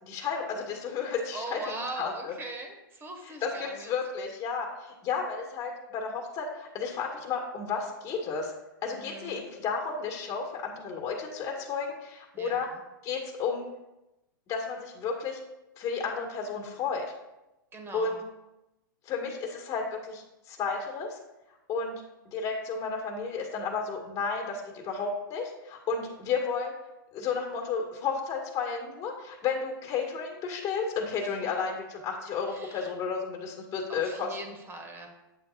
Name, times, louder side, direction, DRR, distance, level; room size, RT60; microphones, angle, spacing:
voice 1, 0.0-2.3 3.2-8.5 8.8-12.7 13.0-13.7 14.5-15.4 15.8-17.1 17.9-18.2 19.0-21.2 21.7-26.7 27.1-34.3, left 5 dB, 30° left, 0 dB, 1.7 m, -32 dB
voice 2, 1.3-3.9 8.9-9.5 12.3-12.8 17.7-18.1 31.2-31.3 32.5-32.9 33.7-35.1, right 2 dB, 20° right, 4 dB, 1.4 m, -41 dB
8.5 x 8.5 x 2.4 m, 0.95 s
hypercardioid pair, 130°, 12 cm